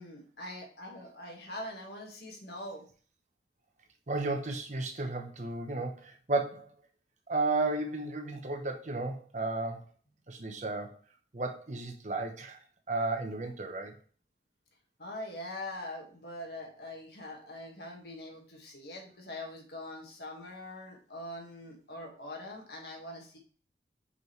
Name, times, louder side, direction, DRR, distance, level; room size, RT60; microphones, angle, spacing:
voice 1, 0.0-2.9 15.0-23.4, left 1 dB, 65° left, 1 dB, 1.7 m, -43 dB
voice 2, 4.1-6.7 7.3-9.8 10.3-11.0 11.3-12.6 12.9-13.9, right 3 dB, 40° right, 4 dB, 0.9 m, -33 dB
5.5 x 5.4 x 3.2 m, 0.41 s
head